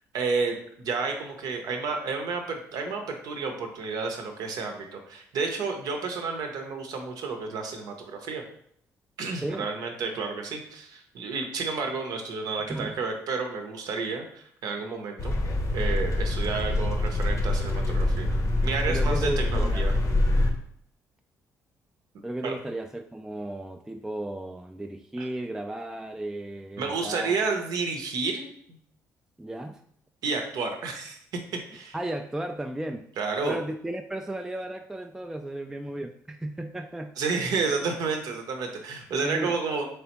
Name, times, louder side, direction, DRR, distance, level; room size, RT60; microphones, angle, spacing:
voice 1, 0.1-8.4 9.2-15.3 15.7-18.4 18.6-19.9 22.4-22.5 25.2-25.3 26.8-28.8 30.2-31.2 31.7-31.9 33.2-33.6 37.2-39.9, right 4 dB, 70° right, 4 dB, 0.7 m, -31 dB
voice 2, 9.4-9.7 12.7-13.0 18.9-20.2 22.2-27.4 29.4-29.8 31.9-33.0 33.4-37.1 39.2-39.5, right 1 dB, 5° right, 4 dB, 0.3 m, -34 dB
sound 1, 15.2-20.5, left 1 dB, 50° left, 0.7 m, -25 dB
3.4 x 3.3 x 2.9 m, 0.67 s
supercardioid pair, 60°, 7 cm